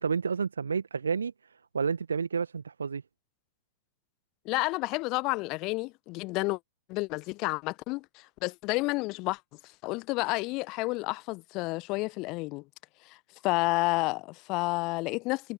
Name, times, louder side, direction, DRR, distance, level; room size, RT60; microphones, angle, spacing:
voice 1, 0.0-1.3 1.7-3.0, right 6 dB, 75° right, 1.7 m, -30 dB
voice 2, 4.4-6.6 6.9-9.4 9.8-12.6 13.0-13.2 13.4-15.5, left 24 dB, 40° left, 1.2 m, -30 dB
figure-of-eight pair, 90°, 0 cm